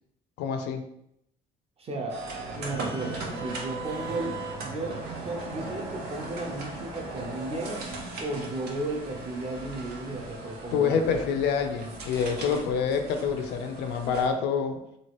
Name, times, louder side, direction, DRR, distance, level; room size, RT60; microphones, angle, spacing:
voice 1, 0.4-0.8 10.7-14.8, left 6 dB, 90° left, 7 dB, 0.5 m, -27 dB
voice 2, 1.8-2.2 2.5-7.9 8.2-11.0, right 2 dB, 35° right, 1 dB, 0.7 m, -34 dB
sound 1, 2.1-14.3, right 2 dB, 75° right, 0.7 m, -38 dB
3.1 x 2.4 x 3.0 m, 0.77 s
cardioid pair, 110°, 17 cm